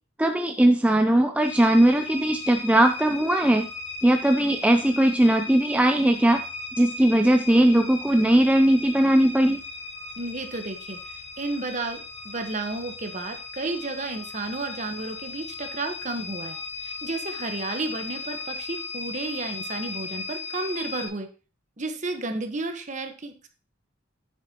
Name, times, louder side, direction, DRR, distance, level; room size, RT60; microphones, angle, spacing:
voice 1, 0.2-3.7 4.0-6.4 6.8-9.6, right 1 dB, 5° right, 5 dB, 0.4 m, -19 dB
sound 1, 1.4-21.1, left 3 dB, 25° left, 2.9 m, -37 dB
voice 2, 10.2-11.0 11.4-16.6 16.8-21.3 21.8-23.5, right 2 dB, 40° right, 5 dB, 1.2 m, -32 dB
10.0 x 8.3 x 2.9 m, 0.35 s
head